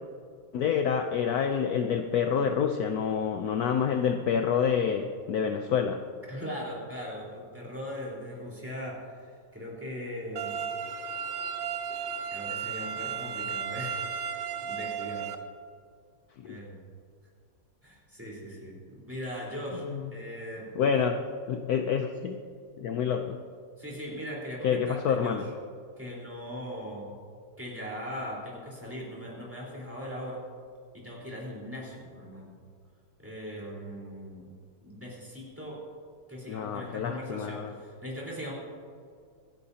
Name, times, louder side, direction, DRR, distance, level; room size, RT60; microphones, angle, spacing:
voice 1, 0.5-6.0 16.4-16.6 19.9-20.0 20.8-21.2 21.5-22.4 22.8-23.4 24.6-25.5 36.5-37.7, left 7 dB, 65° left, 5 dB, 1.1 m, -27 dB
voice 2, 6.3-10.6 12.3-14.3 14.6-15.3 16.5-16.8 17.8-19.9 20.1-20.8 23.8-25.4 26.0-27.1 27.6-30.4 30.9-32.5 33.2-34.5 34.8-35.8 36.3-38.5, equal, 5° right, -5 dB, 4.1 m, -39 dB
sound 1, 10.4-15.4, right 7 dB, 80° right, 1.5 m, -34 dB
26.5 x 10.5 x 2.8 m, 2.2 s
omnidirectional pair, 1.9 m